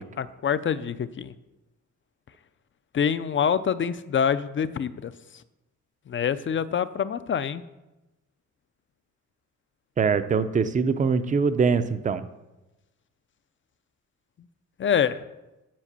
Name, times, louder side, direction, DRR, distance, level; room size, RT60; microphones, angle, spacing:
voice 1, 0.2-1.3 2.9-5.1 6.1-7.6 14.8-15.2, left 7 dB, 40° left, 14 dB, 0.4 m, -25 dB
voice 2, 10.0-12.2, right 5 dB, 25° right, 12 dB, 0.5 m, -23 dB
7.6 x 7.5 x 6.7 m, 1.0 s
wide cardioid pair, 165°, 31 cm